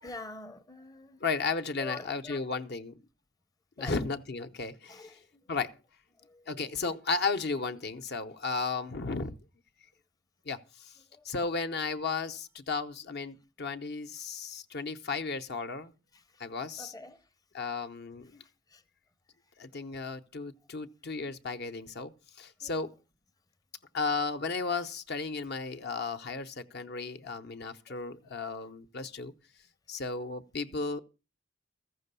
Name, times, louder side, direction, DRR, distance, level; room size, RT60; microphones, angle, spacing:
voice 1, 0.0-1.2 1.8-2.4 3.8-3.9 4.9-5.4 6.2-6.5 11.1-11.2 16.8-17.2 18.7-18.8 22.6-22.7, left 3 dB, 20° left, 0.7 m, -45 dB
voice 2, 1.2-3.0 3.8-5.2 5.5-5.8 6.5-9.4 10.5-10.9 11.2-15.9 16.4-16.9 17.5-18.4 19.6-23.0 23.9-29.3 29.9-31.0, left 4 dB, 55° left, 0.8 m, -34 dB
14.5 x 6.3 x 6.7 m
head